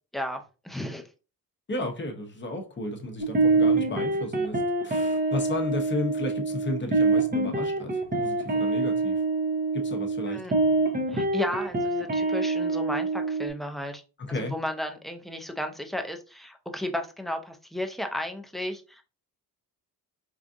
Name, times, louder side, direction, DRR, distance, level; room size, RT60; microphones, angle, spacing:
voice 1, 0.1-1.0 10.3-10.5 11.1-14.0 14.3-19.0, left 1 dB, ahead, 0.5 m, -34 dB
voice 2, 1.7-9.2 9.7-10.4 14.3-14.5, left 1 dB, 30° left, 0.9 m, -33 dB
sound 1, 3.2-13.5, right 3 dB, 25° right, 0.8 m, -25 dB
4.6 x 2.4 x 2.6 m
cardioid pair, 120°, 38 cm